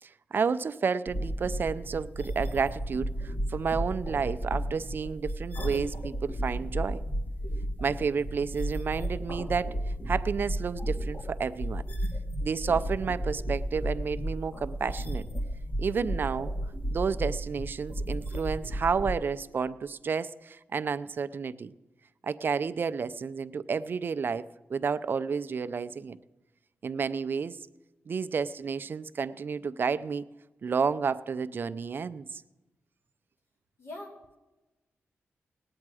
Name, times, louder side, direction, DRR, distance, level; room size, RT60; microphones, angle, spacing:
voice 1, 0.0-7.0 7.8-9.8 10.1-11.8 12.4-15.3 15.8-16.5 16.9-21.7 22.2-26.2 26.8-27.6 28.1-30.2 30.6-32.4, right 5 dB, 50° right, 13 dB, 0.4 m, -31 dB
sound 1, 1.1-19.1, right 1 dB, 40° left, 1.6 m, -33 dB
voice 2, 33.8-34.4, left 2 dB, 75° left, -2 dB, 3.4 m, -43 dB
18.5 x 8.7 x 4.8 m, 1.1 s
wide cardioid pair, 135°, 5 cm